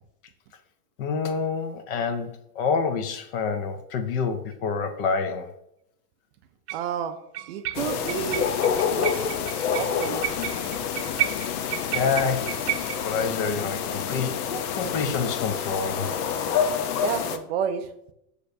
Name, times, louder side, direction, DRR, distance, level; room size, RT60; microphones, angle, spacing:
voice 1, 1.0-5.5 11.9-16.1, left 5 dB, 40° left, 9 dB, 0.5 m, -28 dB
sound 1, 4.5-4.6 6.7-6.9 7.3-13.1, right 14 dB, 80° right, 0.7 m, -33 dB
voice 2, 6.7-7.2 7.5-8.5 8.9-10.3 13.0-13.1 14.5-14.6 17.0-17.9, right 7 dB, 45° right, 8 dB, 0.4 m, -31 dB
sound 2, 7.7-17.4, left 7 dB, 70° left, 0.8 m, -28 dB
6.5 x 6.5 x 2.7 m, 0.77 s
supercardioid pair, 160°, 46 cm